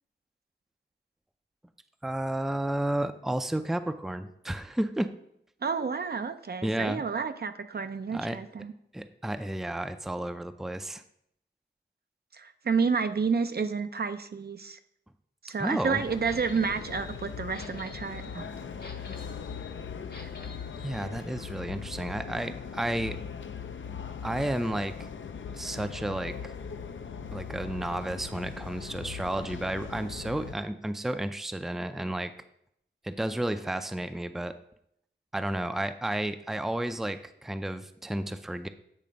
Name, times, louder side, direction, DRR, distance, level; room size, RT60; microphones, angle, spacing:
voice 1, 2.0-5.1 6.6-7.0 8.1-8.4 8.9-11.0 15.6-16.0 20.8-23.2 24.2-25.1 25.5-26.5 27.3-32.3 33.0-34.5 35.3-38.7, right 1 dB, ahead, 10 dB, 0.4 m, -32 dB
voice 2, 5.6-8.7 12.3-14.8 15.4-18.5 20.2-20.3, right 5 dB, 55° right, 9 dB, 0.5 m, -30 dB
sound 1, 15.9-30.5, left 6 dB, 75° left, 0.5 m, -40 dB
sound 2, 16.2-21.1, left 3 dB, 55° left, 1.0 m, -49 dB
8.6 x 3.3 x 5.1 m, 0.74 s
cardioid pair, 45°, 20 cm